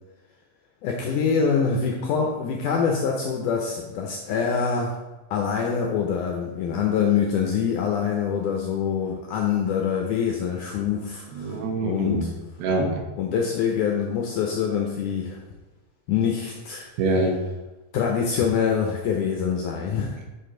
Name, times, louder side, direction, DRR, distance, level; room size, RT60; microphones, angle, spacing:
voice 1, 0.8-4.9 5.3-12.3 13.2-15.4 16.1-16.9 17.9-20.2, left 6 dB, 80° left, 1 dB, 1.9 m, -25 dB
voice 2, 11.3-12.2 12.6-13.0 17.0-17.3, right 2 dB, 80° right, 1 dB, 3.0 m, -24 dB
8.7 x 4.7 x 3.8 m, 1.1 s
omnidirectional pair, 4.3 m